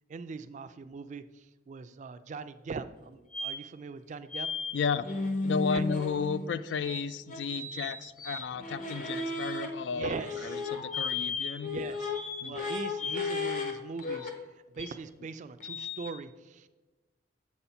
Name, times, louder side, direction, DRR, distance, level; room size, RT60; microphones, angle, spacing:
voice 1, 0.1-1.2 1.7-4.5 5.7-5.9 9.9-10.4 11.6-12.1 12.4-14.3 14.8-16.7, right 4 dB, 40° right, 12 dB, 0.3 m, -40 dB
sound 1, 3.3-3.5 4.3-4.7 5.0-6.5 6.8-9.7 10.1-13.7 14.0-14.3 14.8-14.9 15.6-16.1, left 3 dB, 45° left, 0.9 m, -34 dB
voice 2, 4.7-5.1 5.4-11.9 12.4-12.6, left 6 dB, 70° left, 14 dB, 0.3 m, -33 dB
7.2 x 4.2 x 5.6 m, 1.2 s
head